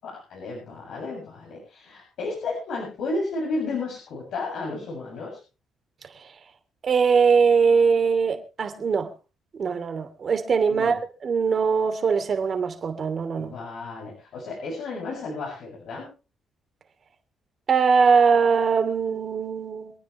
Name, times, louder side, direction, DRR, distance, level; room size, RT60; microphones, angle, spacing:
voice 1, 0.0-5.4 10.7-11.0 13.4-16.1, left 3 dB, 75° left, 7.7 m, -33 dB
voice 2, 6.8-9.1 9.6-13.5 17.7-19.9, right 5 dB, 50° right, 3.1 m, -21 dB
27.0 x 9.6 x 3.4 m
cardioid pair, 90°, 0 cm